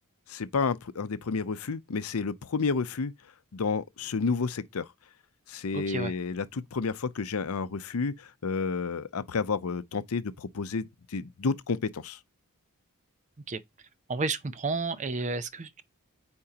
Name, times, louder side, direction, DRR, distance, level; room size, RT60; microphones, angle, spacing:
voice 1, 0.3-3.1 3.5-4.9 5.5-12.2, left 4 dB, 70° left, 0.6 m, -31 dB
voice 2, 5.7-6.1 13.5-13.6 14.1-15.8, right 3 dB, 35° right, 0.6 m, -31 dB
8.8 x 4.4 x 2.9 m
head